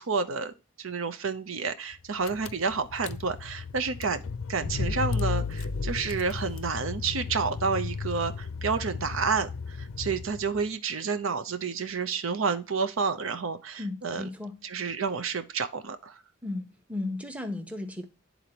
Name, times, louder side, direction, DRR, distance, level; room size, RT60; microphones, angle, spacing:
voice 1, 0.0-4.2 4.5-14.3 14.6-16.2, right 5 dB, 80° right, 0.7 m, -30 dB
Car / Engine, 1.9-2.0 2.2-10.6, left 4 dB, 85° left, 0.5 m, -34 dB
voice 2, 13.8-14.6 16.4-18.1, left 2 dB, 5° right, 0.9 m, -35 dB
11.0 x 4.0 x 2.9 m
head